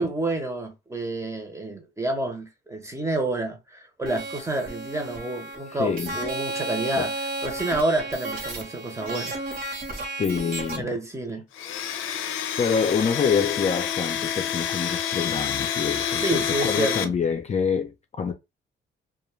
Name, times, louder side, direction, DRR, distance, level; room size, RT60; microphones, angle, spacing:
voice 1, 0.0-7.1 7.4-9.4 10.8-11.4 16.2-17.1, right 2 dB, 15° right, 0.8 m, -29 dB
sound 1, 4.0-10.8, right 2 dB, 45° right, 1.1 m, -33 dB
voice 2, 5.8-6.2 7.0-7.1 10.2-10.9 12.6-18.3, left 6 dB, 35° left, 0.5 m, -26 dB
Domestic sounds home sounds, 11.5-17.0, left 9 dB, 90° left, 0.5 m, -28 dB
2.3 x 2.2 x 3.1 m
cardioid pair, 90°, 20 cm